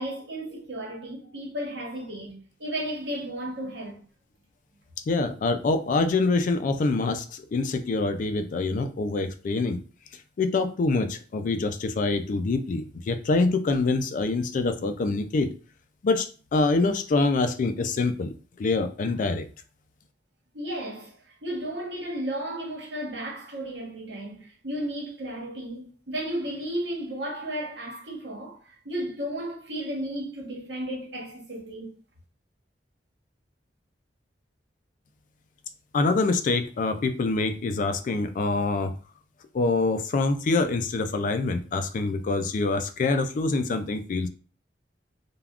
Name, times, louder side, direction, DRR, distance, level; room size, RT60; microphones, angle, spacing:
voice 1, 0.0-4.0 20.5-28.6 28.8-31.9, right 1 dB, 85° right, 1.1 m, -34 dB
voice 2, 5.1-9.8 10.4-15.5 16.0-19.5 35.9-38.9 39.5-44.3, left 3 dB, 50° left, 0.3 m, -25 dB
3.4 x 2.3 x 2.3 m
head